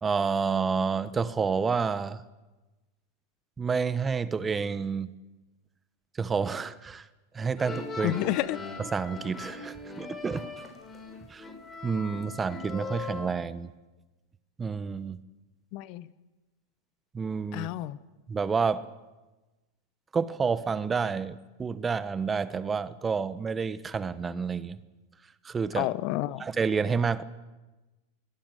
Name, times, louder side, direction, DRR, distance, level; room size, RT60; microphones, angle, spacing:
voice 1, 0.0-2.2 3.6-5.1 6.2-7.0 7.3-8.2 8.9-10.5 11.3-11.4 11.8-13.7 14.6-15.2 17.1-17.7 18.3-18.9 20.1-24.8 25.4-25.9 26.4-27.2, right 5 dB, 20° right, 16 dB, 1.2 m, -29 dB
sound 1, 7.6-13.3, left 4 dB, 20° left, 6.0 m, -40 dB
voice 2, 8.0-8.6 15.7-16.1 17.5-18.0 25.8-26.4, left 16 dB, 50° left, 17 dB, 1.0 m, -30 dB
22.5 x 18.5 x 9.2 m, 1.1 s
hypercardioid pair, 95°, 0 cm